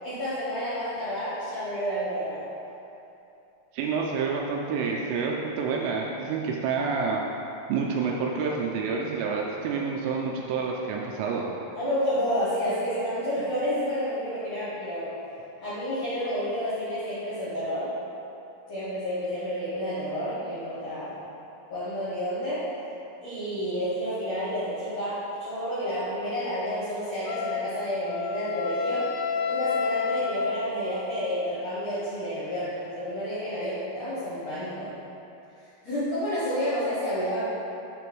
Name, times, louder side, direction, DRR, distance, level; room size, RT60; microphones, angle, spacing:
voice 1, 0.0-2.4 11.7-15.1 15.6-17.9 18.7-21.2 21.7-22.6 23.2-29.1 29.4-34.9 35.8-37.4, equal, 70° left, -11 dB, 1.6 m, -30 dB
voice 2, 3.7-7.2 7.7-11.5, right 5 dB, 85° right, -1 dB, 2.7 m, -28 dB
Wind instrument woodwind instrument, 27.3-31.2, left 5 dB, 85° left, 2.2 m, -30 dB
6.8 x 3.1 x 6.0 m, 2.8 s
omnidirectional pair, 5.0 m